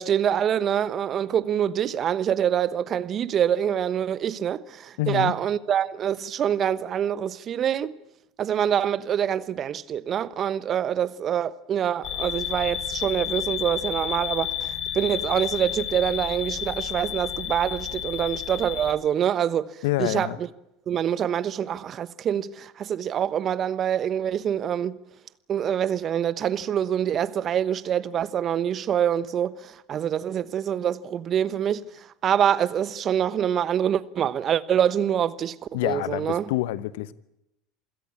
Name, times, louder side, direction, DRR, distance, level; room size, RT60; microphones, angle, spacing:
voice 1, 0.0-7.9 8.4-20.5 20.9-25.0 25.5-36.5, right 9 dB, 40° right, 1.1 m, -25 dB
voice 2, 5.0-5.3 19.8-20.4 35.7-37.1, left 16 dB, 70° left, 1.0 m, -27 dB
sound 1, 12.0-18.9, left 10 dB, 50° left, 3.5 m, -31 dB
27.5 x 17.0 x 8.6 m
hypercardioid pair, 80°, 0 cm